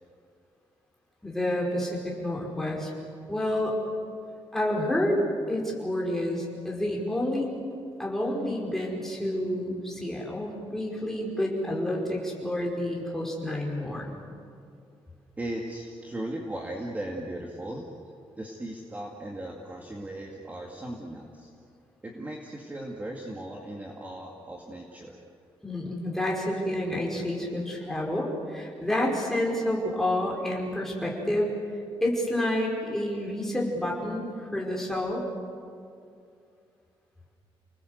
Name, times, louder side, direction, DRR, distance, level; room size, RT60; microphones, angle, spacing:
voice 1, 1.2-2.9 3.3-3.8 4.5-7.5 8.0-14.1 25.6-31.6 32.0-35.2, left 1 dB, 5° left, -2 dB, 5.1 m, -29 dB
voice 2, 15.4-17.9 18.4-21.5 22.0-25.2, right 1 dB, 15° right, 0 dB, 2.2 m, -37 dB
30.0 x 20.0 x 8.1 m, 2.4 s
wide cardioid pair, 160°, 10 cm